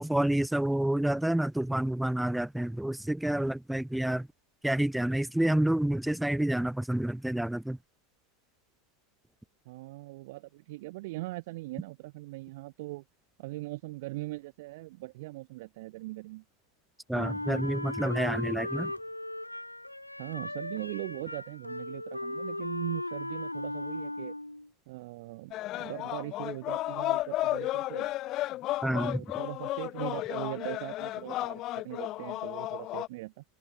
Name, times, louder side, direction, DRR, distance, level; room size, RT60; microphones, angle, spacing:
voice 1, 0.0-4.3 4.6-7.8 17.1-18.9 28.8-29.2, right 1 dB, 5° right, 0.6 m, -28 dB
voice 2, 9.7-13.0 13.4-16.4 18.7-18.9 20.2-24.3 24.9-28.1 28.8-33.4, right 20 dB, 50° right, 5.8 m, -40 dB
Wind instrument woodwind instrument, 17.1-24.7, left 1 dB, 85° left, 0.9 m, -37 dB
sound 1, 25.5-33.1, left 16 dB, 35° left, 1.0 m, -33 dB
figure-of-eight pair, 90°, 0 cm